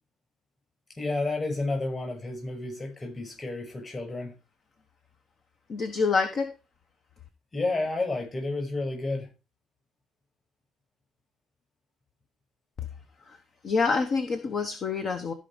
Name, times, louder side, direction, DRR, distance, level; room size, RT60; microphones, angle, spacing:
voice 1, 1.0-4.3 7.5-9.3, left 2 dB, 25° left, 2 dB, 6.8 m, -31 dB
voice 2, 5.7-6.5 13.3-13.4 13.6-15.3, left 4 dB, 45° left, 8 dB, 1.0 m, -27 dB
13.0 x 5.3 x 5.0 m, 0.30 s
cardioid pair, 115°, 0 cm